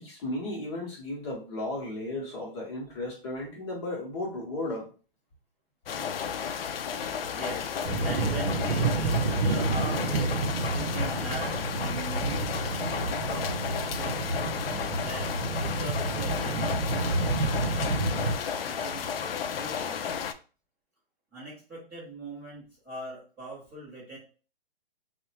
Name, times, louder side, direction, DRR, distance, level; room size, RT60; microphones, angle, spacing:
voice 1, 0.0-4.9, left 2 dB, 30° left, -2 dB, 0.8 m, -34 dB
sound 1, 5.9-20.3, left 7 dB, 70° left, 0.4 m, -33 dB
voice 2, 7.3-12.5 13.2-14.2 15.0-19.1 19.5-20.1 21.3-24.2, right 2 dB, 5° right, -11 dB, 0.7 m, -41 dB
sound 2, 7.8-18.4, right 3 dB, 80° right, 0.8 m, -29 dB
3.2 x 2.1 x 2.8 m, 0.37 s
hypercardioid pair, 160°, 30 cm